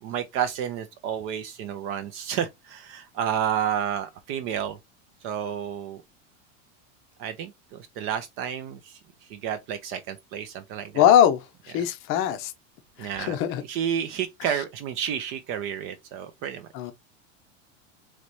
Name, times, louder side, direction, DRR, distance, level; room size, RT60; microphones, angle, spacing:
voice 1, 0.0-4.8 5.2-6.0 7.2-9.0 9.3-11.1 11.7-11.9 13.0-16.7, right 9 dB, 35° right, 0.4 m, -31 dB
voice 2, 10.9-11.4 11.7-12.5 13.0-13.6 16.7-16.9, left 10 dB, 35° left, 0.6 m, -21 dB
4.0 x 3.1 x 3.0 m
supercardioid pair, 155°, 37 cm